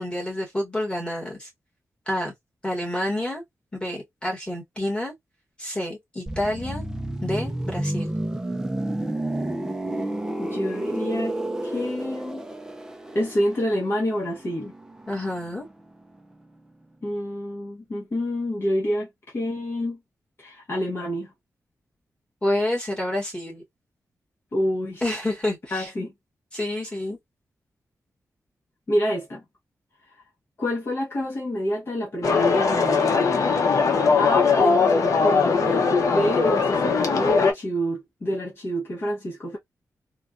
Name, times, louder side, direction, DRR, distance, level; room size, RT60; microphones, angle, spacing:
voice 1, 0.0-1.5 2.1-2.3 2.6-3.4 3.7-5.1 5.6-6.8 7.2-8.1 15.1-15.6 22.4-23.6 25.0-25.9 26.5-27.2, left 1 dB, 15° left, 1.5 m, -28 dB
sound 1, 6.3-15.9 16.2-16.4, right 1 dB, 10° right, 0.4 m, -31 dB
voice 2, 10.4-11.4 11.6-12.4 13.1-14.7 17.0-20.0 20.4-21.3 24.5-25.1 25.7-26.1 28.9-29.4 30.0-30.2 30.6-33.3 34.2-39.6, equal, 40° left, 0.9 m, -28 dB
sound 2, 32.2-37.5, left 5 dB, 65° left, 0.8 m, -20 dB
3.3 x 2.2 x 2.4 m
wide cardioid pair, 140°, 6 cm